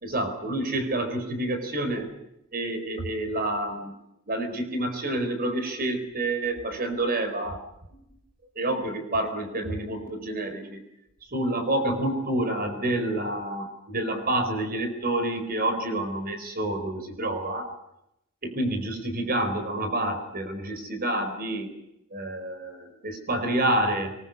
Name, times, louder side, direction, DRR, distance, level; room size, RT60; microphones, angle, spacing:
voice 1, 0.0-2.1 2.5-3.9 4.3-7.6 7.9-8.0 8.5-10.8 11.3-17.7 18.4-21.7 22.1-24.1, right 1 dB, 45° right, 7 dB, 4.5 m, -28 dB
23.0 x 21.0 x 9.4 m, 0.84 s
head